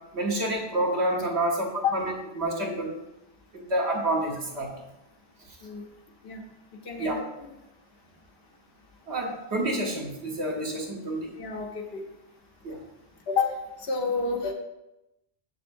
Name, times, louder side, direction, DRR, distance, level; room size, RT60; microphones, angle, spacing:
voice 1, 0.1-2.9 3.5-4.7 7.0-7.2 9.1-11.3 12.6-12.8, right 1 dB, 80° right, -1 dB, 1.5 m, -28 dB
voice 2, 6.8-7.5 11.4-12.0 13.3-14.5, left 5 dB, 65° left, 1 dB, 1.1 m, -29 dB
6.9 x 6.3 x 2.6 m, 0.94 s
omnidirectional pair, 1.1 m